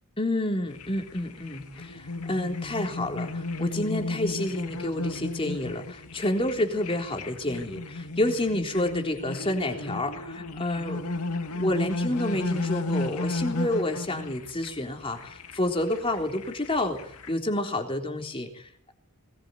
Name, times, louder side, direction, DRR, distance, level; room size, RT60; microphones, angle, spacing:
voice 1, 0.2-11.0 11.5-17.0 17.3-18.9, left 1 dB, 25° left, 3 dB, 3.7 m, -29 dB
sound 1, 0.7-17.3, left 2 dB, 80° left, 2.3 m, -34 dB
21.0 x 20.0 x 9.4 m, 0.66 s
head